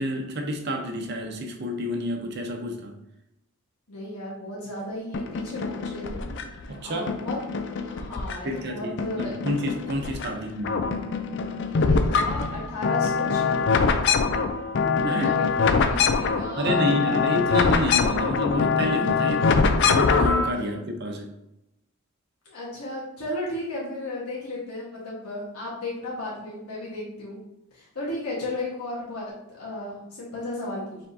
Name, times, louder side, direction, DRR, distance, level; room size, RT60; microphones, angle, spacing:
voice 1, 0.0-3.0 6.7-7.1 8.4-10.9 15.0-15.4 16.6-21.3, equal, 50° right, 3 dB, 0.7 m, -29 dB
voice 2, 3.9-6.4 6.8-7.4 7.8-9.3 11.7-13.9 14.8-16.9 20.7-20.8 22.4-27.4 27.7-31.0, left 1 dB, 90° left, -6 dB, 1.4 m, -34 dB
sound 1, 5.1-6.6 7.1-8.6 9.0-10.3 10.6-20.5, left 5 dB, 55° left, 0.4 m, -24 dB
4.6 x 3.6 x 2.7 m, 0.86 s
head